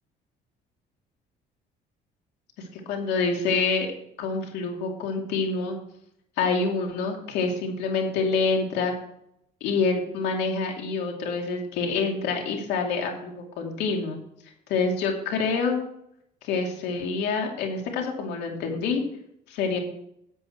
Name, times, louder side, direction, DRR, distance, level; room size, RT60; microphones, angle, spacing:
voice 1, 2.9-3.9 4.2-5.8 6.4-8.9 9.6-14.2 14.7-15.8 16.4-19.0 19.5-19.8, left 4 dB, 90° left, 2 dB, 2.6 m, -26 dB
13.0 x 8.2 x 4.6 m, 0.76 s
cardioid pair, 110°, 17 cm